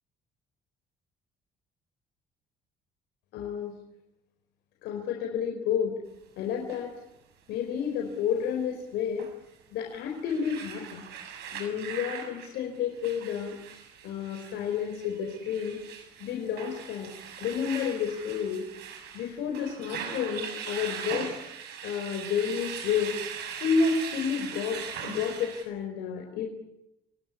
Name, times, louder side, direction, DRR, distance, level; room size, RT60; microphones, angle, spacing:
voice 1, 3.3-3.7 4.8-5.9 6.4-6.9 7.5-9.3 9.7-11.1 11.5-13.6 14.0-15.8 16.2-17.1 17.4-18.6 19.1-21.3 21.8-23.2 23.6-26.5, left 7 dB, 85° left, 2 dB, 4.6 m, -30 dB
sound 1, 6.7-6.8 9.2-9.3 9.9-25.6, right 7 dB, 80° right, 6.9 m, -40 dB
28.5 x 18.5 x 9.7 m, 0.90 s
cardioid pair, 110°, 17 cm